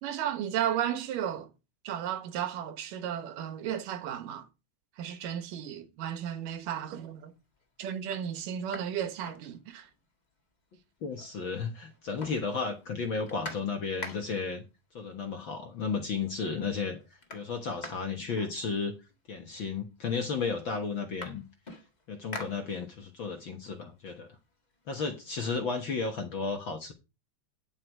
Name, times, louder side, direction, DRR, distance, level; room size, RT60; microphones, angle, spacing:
voice 1, 0.0-1.5 1.8-4.5 5.0-7.3 7.8-9.9, right 10 dB, 85° right, 2.8 m, -34 dB
sound 1, 6.6-7.0 7.5-7.6 8.0-10.1 10.4-10.5 10.7-11.6 11.8-14.6 15.5-15.6 16.0-16.5 16.7-19.2 20.0-20.1 20.4-23.2 23.6-25.3, left 2 dB, 20° left, 1.1 m, -46 dB
voice 2, 11.0-14.6 14.9-17.0 17.3-18.9 19.3-21.4 22.1-24.3 24.9-26.9, left 5 dB, 50° left, 1.6 m, -33 dB
11.0 x 8.0 x 4.7 m
omnidirectional pair, 3.7 m